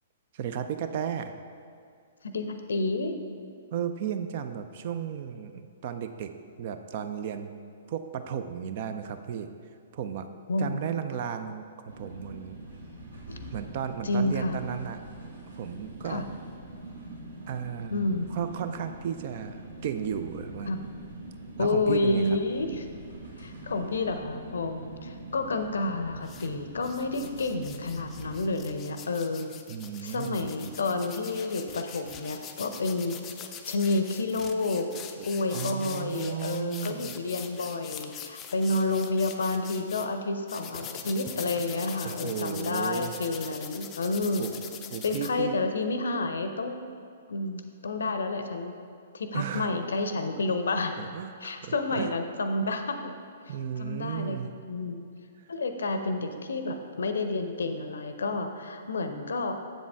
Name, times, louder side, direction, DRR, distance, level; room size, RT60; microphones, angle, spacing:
voice 1, 0.3-1.3 3.7-7.5 7.9-9.5 9.9-10.3 10.6-12.6 13.5-15.0 15.6-16.2 17.5-18.1 18.3-20.7 21.6-22.2 29.7-30.8 35.2-35.3 35.5-37.1 42.0-43.1 44.4-44.5 44.9-45.5 49.3-49.7 51.0-52.1 53.5-54.5, right 8 dB, 45° right, 9 dB, 0.4 m, -34 dB
voice 2, 2.2-3.2 10.5-10.8 13.3-13.4 14.0-14.6 16.0-16.3 17.9-18.3 20.7-20.8 21.6-22.9 23.4-29.5 30.0-33.1 33.7-34.9 35.2-44.5 45.0-46.8 47.3-48.7 49.1-51.0 51.4-53.1 53.5-55.1 55.5-59.5, left 2 dB, 65° left, 7 dB, 0.6 m, -30 dB
sound 1, 11.9-28.7, right 2 dB, 70° right, 1.4 m, -44 dB
sound 2, 26.2-26.5 26.8-40.1 40.5-45.3, left 8 dB, 20° left, 0.4 m, -43 dB
7.5 x 7.2 x 3.5 m, 2.4 s
figure-of-eight pair, 115°, 0 cm